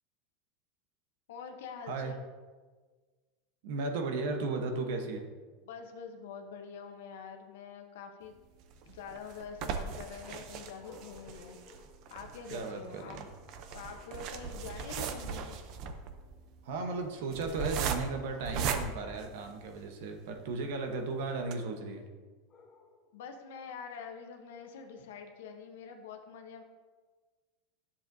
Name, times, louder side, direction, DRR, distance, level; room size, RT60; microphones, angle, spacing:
voice 1, 1.3-2.2 5.6-8.4 8.9-11.8 12.1-13.2 13.7-15.6 23.1-26.6, left 6 dB, 85° left, 4 dB, 0.9 m, -45 dB
voice 2, 3.6-5.3 12.5-13.3 16.6-22.1, right 3 dB, 70° right, 5 dB, 1.0 m, -35 dB
sound 1, 8.6-20.0 20.5-20.6 20.9-21.0 21.4-21.5, right 6 dB, 45° right, 0.6 m, -38 dB
sound 2, 10.2-12.7 13.9-14.5 14.9-15.4 18.3-19.0 22.5-23.2, left 3 dB, 25° left, 1.0 m, -58 dB
10.5 x 7.0 x 2.7 m, 1.4 s
supercardioid pair, 155°, 0 cm